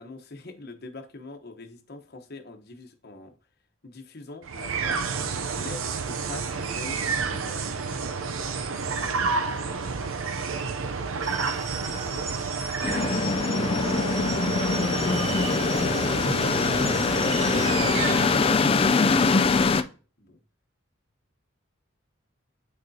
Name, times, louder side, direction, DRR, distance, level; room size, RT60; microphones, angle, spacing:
voice 1, 0.0-3.3 3.8-5.1 5.6-7.6 11.9-12.3 13.6-14.0 14.7-20.4, left 3 dB, 50° left, 6 dB, 1.0 m, -42 dB
sound 1, 4.4-18.7, right 5 dB, 75° right, 0.6 m, -30 dB
sound 2, 11.2-17.7, right 2 dB, 15° right, 0.8 m, -38 dB
sound 3, 12.8-19.8, left 4 dB, 25° left, 0.3 m, -23 dB
8.8 x 6.3 x 2.7 m, 0.38 s
head